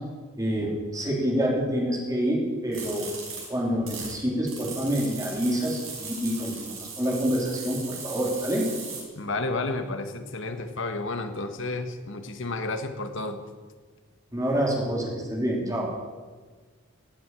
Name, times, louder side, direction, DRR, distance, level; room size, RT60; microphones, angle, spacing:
voice 1, 0.4-3.1 3.5-8.7 14.3-15.9, equal, 15° right, -2 dB, 3.4 m, -27 dB
sound 1, 2.7-4.1 4.5-9.0, right 5 dB, 70° right, 6.0 m, -38 dB
voice 2, 9.2-13.4, left 2 dB, 60° left, 7 dB, 1.6 m, -31 dB
16.5 x 8.0 x 9.0 m, 1.4 s
head